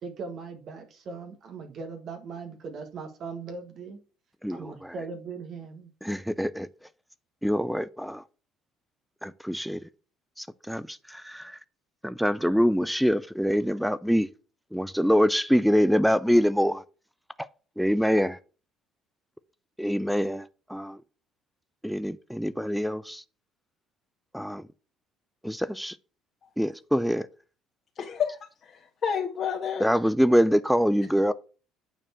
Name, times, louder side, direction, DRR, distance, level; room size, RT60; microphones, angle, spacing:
voice 1, 0.0-4.0 4.5-5.9, right 4 dB, 50° right, 1.7 m, -39 dB
voice 2, 4.4-4.9 6.0-6.7 7.4-8.2 9.2-9.8 10.4-11.6 12.0-14.3 14.7-16.8 17.8-18.4 19.8-21.0 21.8-23.2 24.3-24.6 25.4-26.0 26.6-27.3 29.8-31.3, equal, ahead, 0.5 m, -25 dB
voice 3, 27.9-29.9, left 7 dB, 45° left, 1.7 m, -30 dB
9.0 x 4.5 x 5.7 m
cardioid pair, 105°, 0 cm